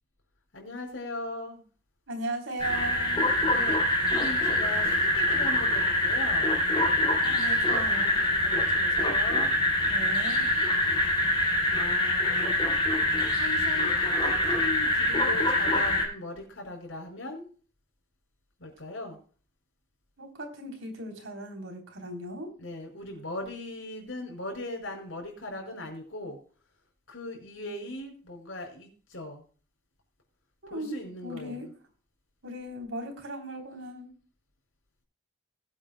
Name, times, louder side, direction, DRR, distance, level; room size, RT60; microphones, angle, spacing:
voice 1, 0.5-1.6 3.4-6.6 8.4-9.5 10.5-10.7 11.7-12.6 13.3-17.5 18.6-19.2 22.6-26.4 27.1-29.4 30.7-31.7, left 1 dB, 80° left, 0 dB, 4.9 m, -39 dB
voice 2, 2.1-3.3 7.2-8.2 9.8-10.5 20.2-22.5 30.6-31.7 32.4-34.1, right 1 dB, 85° right, 3 dB, 3.4 m, -37 dB
sound 1, 2.6-16.0, left 1 dB, 25° left, 3.0 m, -25 dB
20.5 x 8.8 x 2.2 m, 0.40 s
head